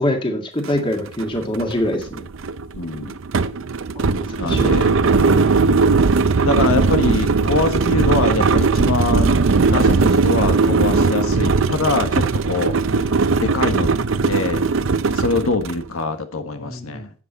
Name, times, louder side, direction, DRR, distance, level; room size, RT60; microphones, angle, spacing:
voice 1, 0.0-2.2 4.0-4.7 16.6-17.1, left 1 dB, 25° left, 3 dB, 2.0 m, -24 dB
sound 1, 0.7-0.8 1.1-15.8, right 4 dB, 65° right, 0.6 m, -18 dB
voice 2, 2.7-3.2 4.4-5.0 5.2-5.7 6.4-9.4 9.6-13.0 13.4-13.9 14.2-14.6 15.1-17.1, left 3 dB, 85° left, 7 dB, 1.4 m, -23 dB
11.0 x 8.5 x 4.0 m, 0.37 s
head